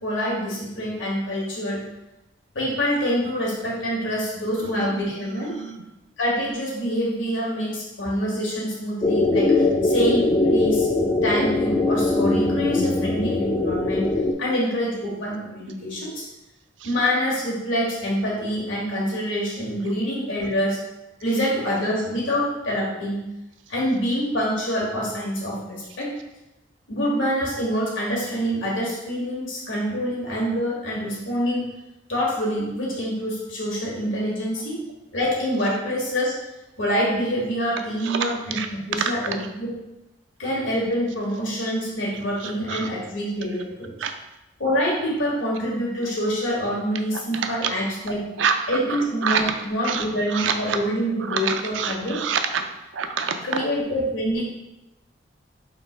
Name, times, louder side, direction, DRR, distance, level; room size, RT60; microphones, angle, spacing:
voice 1, 0.0-1.8 2.5-5.5 6.2-10.9 11.2-14.0 14.4-16.2 16.8-20.8 21.2-23.2 23.7-26.1 26.9-31.6 32.1-34.8 35.1-36.3 36.8-38.6 38.9-39.7 40.4-43.9 44.6-48.2 48.7-52.2 53.4-54.4, equal, 85° left, -4 dB, 1.5 m, -26 dB
voice 2, 4.5-5.8 15.7-15.8 16.8-16.9 19.8-19.9 20.4-20.5 38.0-38.7 42.4-42.9 44.0-44.1 47.1-47.7 48.4-49.5 49.8-50.8 51.2-52.7 52.9-53.6, right 6 dB, 75° right, 7 dB, 0.4 m, -28 dB
sound 1, 9.0-14.3, left 2 dB, 25° left, 0.3 m, -21 dB
3.7 x 2.8 x 4.5 m, 0.96 s
head